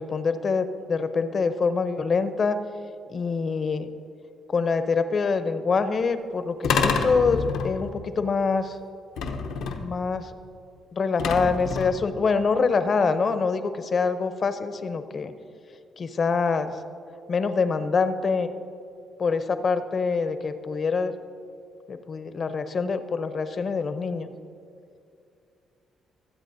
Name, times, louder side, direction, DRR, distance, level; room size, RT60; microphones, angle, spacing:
voice 1, 0.0-2.6 3.1-3.9 4.5-8.8 9.8-10.3 10.9-15.3 16.0-16.7 17.3-18.5 19.2-21.1 21.9-24.3, left 4 dB, 45° left, 10 dB, 0.7 m, -25 dB
sound 1, 6.6-8.0 9.2-10.0 11.2-12.1, left 5 dB, 85° left, 0.9 m, -27 dB
22.0 x 8.1 x 2.7 m, 2.5 s
cardioid pair, 90°, 0 cm